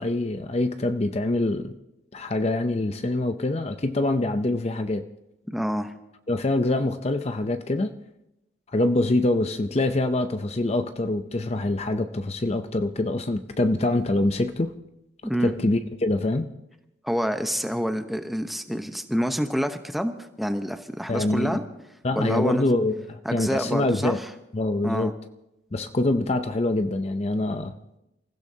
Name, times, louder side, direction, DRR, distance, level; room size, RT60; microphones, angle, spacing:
voice 1, 0.0-1.7 2.1-5.0 6.3-7.9 8.7-14.7 15.4-16.5 21.1-21.6 22.0-24.2 24.5-25.1 25.7-27.7, left 2 dB, 35° left, 8 dB, 0.6 m, -25 dB
voice 2, 5.5-5.9 15.2-15.5 17.0-20.1 20.4-21.6 22.2-22.7 23.2-24.3 24.8-25.1, equal, ahead, 6 dB, 0.9 m, -27 dB
29.5 x 15.5 x 2.8 m, 0.88 s
head